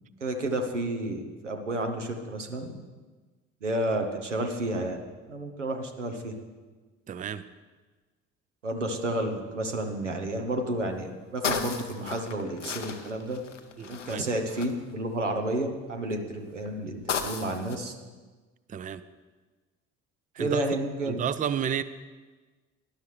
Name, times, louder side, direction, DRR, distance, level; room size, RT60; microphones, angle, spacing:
voice 1, 0.2-2.7 3.6-6.3 8.6-13.4 13.9-17.9 20.4-21.2, right 1 dB, 85° right, 4 dB, 1.1 m, -31 dB
voice 2, 7.1-7.4 13.8-14.3 18.7-19.0 20.3-21.8, right 8 dB, 25° right, 14 dB, 0.5 m, -32 dB
sound 1, 9.2-9.6 10.1-10.2 10.4-15.6 16.3-17.8, left 6 dB, 90° left, 0.7 m, -35 dB
18.0 x 11.5 x 3.2 m, 1.3 s
figure-of-eight pair, 50°, 35 cm